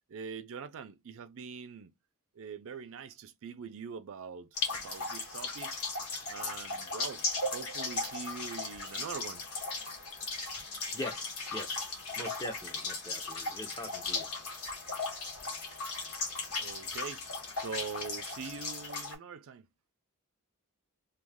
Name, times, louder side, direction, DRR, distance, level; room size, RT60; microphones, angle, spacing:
voice 1, 0.1-1.9 2.4-5.8 6.3-7.2 7.5-9.4 16.6-17.2 17.5-19.7, right 6 dB, 65° right, 0.5 m, -43 dB
sound 1, 4.6-19.2, left 3 dB, 80° left, 1.1 m, -37 dB
voice 2, 10.9-11.8 12.2-14.3, left 1 dB, 15° left, 0.8 m, -42 dB
3.1 x 2.2 x 3.5 m
head